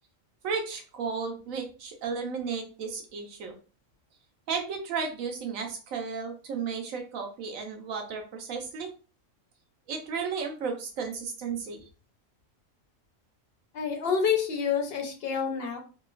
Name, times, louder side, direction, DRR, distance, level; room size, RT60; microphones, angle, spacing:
voice 1, 0.4-3.5 4.5-8.9 9.9-11.8, right 5 dB, 80° right, 3 dB, 1.1 m, -34 dB
voice 2, 13.7-15.8, left 6 dB, 60° left, 3 dB, 0.7 m, -28 dB
2.9 x 2.2 x 2.4 m, 0.36 s
omnidirectional pair, 1.4 m